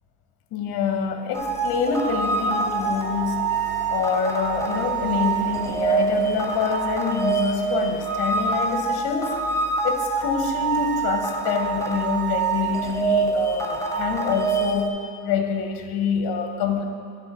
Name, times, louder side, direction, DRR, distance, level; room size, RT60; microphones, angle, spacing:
voice 1, 0.5-3.5 3.9-9.4 9.8-16.8, left 6 dB, 50° left, 5 dB, 0.9 m, -26 dB
sound 1, 1.3-14.9, right 4 dB, 5° left, 0.5 m, -25 dB
Beast roar, 1.7-8.9, right 1 dB, 35° right, 2.0 m, -40 dB
9.9 x 3.6 x 5.4 m, 2.4 s
cardioid pair, 125°, 49 cm